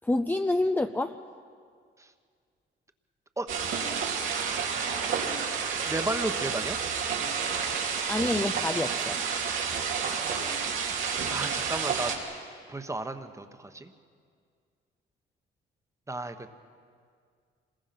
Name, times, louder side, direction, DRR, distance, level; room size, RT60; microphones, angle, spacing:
voice 1, 0.0-1.2 8.1-9.2, left 2 dB, 10° left, 7 dB, 0.6 m, -27 dB
sound 1, 3.5-12.2, right 6 dB, 90° right, 3.0 m, -30 dB
voice 2, 5.8-6.8 11.3-12.1 12.7-13.9 16.1-16.5, right 2 dB, 15° right, 9 dB, 1.2 m, -33 dB
26.5 x 20.5 x 6.0 m, 2.1 s
cardioid pair, 90°, 20 cm